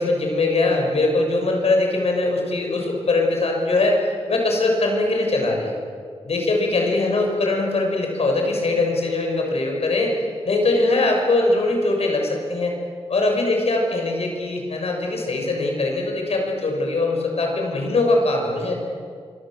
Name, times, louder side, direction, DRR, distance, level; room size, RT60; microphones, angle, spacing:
voice 1, 0.0-4.0 4.3-5.7 6.2-10.1 10.4-12.8 13.1-18.8, left 2 dB, 75° left, 1 dB, 6.5 m, -21 dB
26.0 x 24.0 x 7.7 m, 2.1 s
wide cardioid pair, 135°, 11 cm